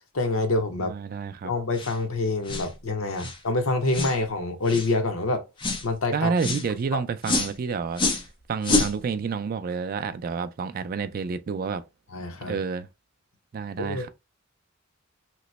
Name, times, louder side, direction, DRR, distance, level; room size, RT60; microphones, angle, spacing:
voice 1, 0.1-0.9 1.4-5.4 5.8-6.3 6.9-7.0 12.1-12.6 13.8-14.1, left 2 dB, 75° left, 0.8 m, -26 dB
voice 2, 0.8-1.5 6.1-8.0 8.5-11.8 12.4-12.9 13.5-14.1, right 5 dB, 45° right, 0.3 m, -29 dB
sound 1, 1.7-2.0 2.5-2.7 3.2-3.4 3.9-4.2 4.7-4.9 5.6-5.9 6.4-6.7 7.2-7.5 7.9-8.3 8.6-8.9, left 2 dB, 25° left, 0.5 m, -26 dB
3.0 x 2.1 x 4.0 m
head